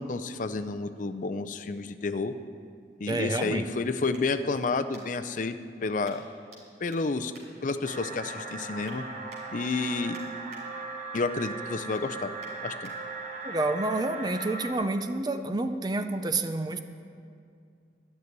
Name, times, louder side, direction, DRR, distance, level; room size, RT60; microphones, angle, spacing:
voice 1, 0.0-2.3 3.0-6.2 6.8-7.3 7.6-9.0 9.5-10.2 11.1-12.3 12.6-12.9, left 3 dB, 45° left, 9 dB, 0.5 m, -30 dB
voice 2, 3.1-3.7 13.4-16.8, right 2 dB, 25° right, 8 dB, 0.5 m, -29 dB
sound 1, 4.1-5.4 6.0-6.6 6.9-8.2 8.6-9.0 9.3-10.6 11.0-11.3 11.6-12.9 13.5-13.6, right 2 dB, 70° right, 3.6 m, -54 dB
sound 2, 7.8-14.7, right 3 dB, 45° right, 1.0 m, -38 dB
12.0 x 6.8 x 9.5 m, 2.3 s
head